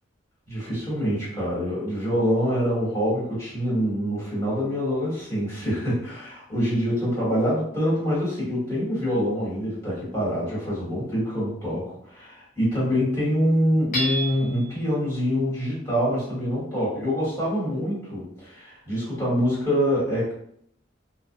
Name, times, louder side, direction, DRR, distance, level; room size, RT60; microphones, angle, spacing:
voice 1, 0.5-20.3, equal, 15° left, -8 dB, 1.3 m, -25 dB
Hammer / Chink clink, 13.9-14.7, right 1 dB, 45° left, 0.7 m, -29 dB
2.5 x 2.1 x 2.6 m, 0.66 s
head